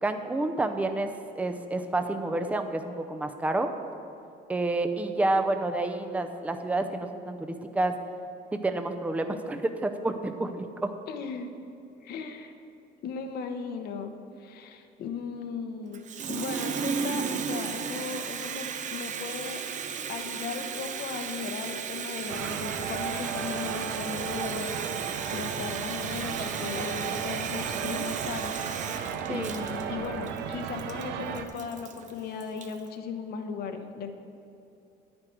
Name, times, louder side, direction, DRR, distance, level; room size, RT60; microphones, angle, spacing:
voice 1, 0.0-3.7 4.5-7.9 8.6-10.9 25.6-25.8 29.3-29.5, right 2 dB, 10° right, 7 dB, 0.6 m, -29 dB
voice 2, 11.1-11.5 12.0-12.5 13.0-14.1 14.4-19.6 20.1-28.6 28.9-34.1, left 5 dB, 70° left, 6 dB, 0.9 m, -37 dB
Water tap faucet, 15.9-32.9, right 6 dB, 45° right, 0.7 m, -35 dB
sound 1, 22.3-31.5, right 8 dB, 85° right, 0.7 m, -35 dB
9.8 x 9.6 x 4.5 m, 2.8 s
cardioid pair, 110°, 17 cm